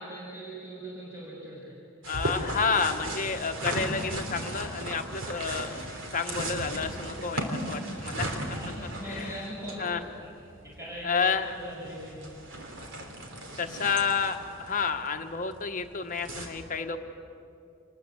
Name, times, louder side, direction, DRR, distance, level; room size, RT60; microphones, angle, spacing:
voice 1, 0.0-1.8 7.8-10.0 10.4-12.3, right 1 dB, 15° right, -6 dB, 6.4 m, -41 dB
sound 1, 2.0-16.5, right 1 dB, 60° right, 3.5 m, -37 dB
voice 2, 2.1-8.3 8.8-9.4 9.8-10.0 11.0-11.5 13.6-17.0, left 5 dB, 40° left, 5 dB, 1.3 m, -30 dB
28.0 x 20.5 x 8.0 m, 2.6 s
head